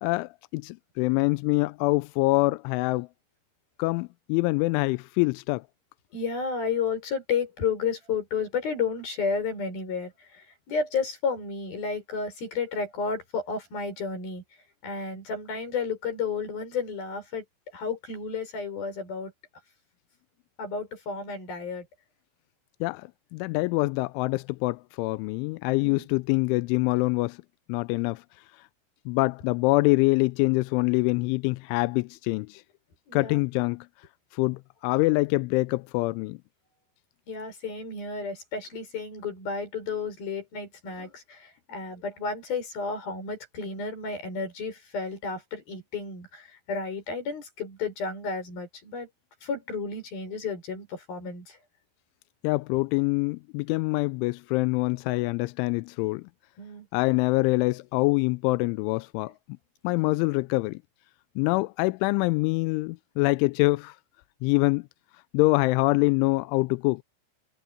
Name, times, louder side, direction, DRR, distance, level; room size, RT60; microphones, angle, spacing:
voice 1, 0.0-3.1 3.8-5.6 22.8-27.4 27.7-28.2 29.1-32.6 33.1-33.9 34.3-36.4 52.4-56.2 56.9-59.3 59.8-60.8 61.4-64.0 64.4-64.8 65.3-67.0, left 24 dB, 85° left, 2.8 m, -25 dB
voice 2, 6.1-14.4 14.8-17.4 17.7-19.3 20.6-21.8 25.8-26.1 33.1-33.4 37.3-49.1 49.4-51.6 56.6-56.9, left 5 dB, 45° left, 8.1 m, -32 dB
omnidirectional pair, 5.9 m